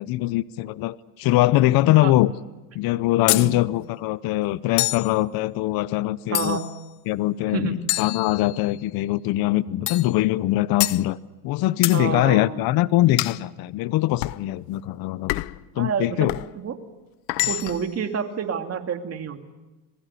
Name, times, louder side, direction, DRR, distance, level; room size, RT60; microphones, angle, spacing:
voice 1, 0.0-2.3 2.7-6.6 7.1-11.2 11.4-15.4 15.8-16.4, left 16 dB, 45° left, 17 dB, 0.8 m, -22 dB
sound 1, 3.3-3.5 4.8-5.1 6.3-6.8 7.9-8.8 9.9-10.1 10.8-11.0 11.8-12.0 13.2-13.4 14.2-14.4 15.3-15.6 16.3-16.5 17.3-17.9, left 20 dB, 90° left, 0.8 m, -26 dB
voice 2, 6.3-6.7 7.5-7.8 11.9-12.6 15.8-16.8 17.5-19.4, right 7 dB, 30° right, 5 dB, 2.6 m, -29 dB
27.0 x 20.5 x 8.3 m, 1.1 s
supercardioid pair, 130°, 50 cm